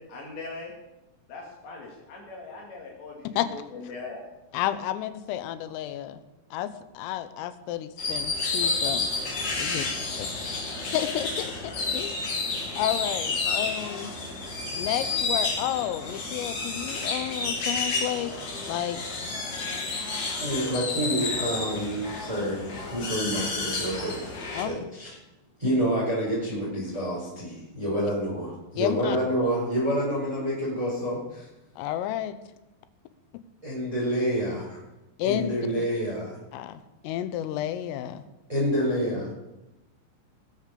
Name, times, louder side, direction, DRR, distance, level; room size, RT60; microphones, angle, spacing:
voice 1, 0.1-0.7 1.3-4.2, left 3 dB, 65° left, -2 dB, 4.2 m, -40 dB
voice 2, 4.5-6.2 6.5-9.8 10.2-10.3 10.9-12.1 12.8-14.1 14.7-18.3 18.7-19.0 24.5-24.7 28.8-29.2 31.8-32.4 35.2-35.8 36.5-38.2, left 12 dB, 85° left, 11 dB, 3.5 m, -31 dB
sound 1, 8.0-24.6, left 3 dB, 40° left, 3.7 m, -30 dB
voice 3, 20.4-24.2 24.6-25.1 25.6-31.5 33.6-34.8 35.2-36.4 38.5-39.3, equal, 5° right, -8 dB, 4.2 m, -28 dB
19.5 x 7.6 x 6.7 m, 0.97 s
omnidirectional pair, 5.8 m